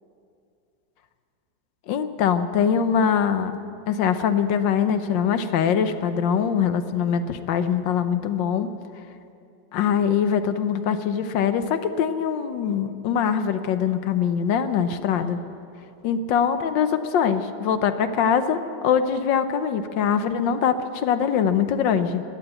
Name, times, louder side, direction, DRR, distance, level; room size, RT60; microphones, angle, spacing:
voice 1, 1.9-3.6 3.9-8.7 9.7-15.4 16.0-18.6 18.8-22.2, left 7 dB, 75° left, 10 dB, 1.5 m, -23 dB
17.5 x 10.0 x 8.1 m, 2.5 s
omnidirectional pair, 2.1 m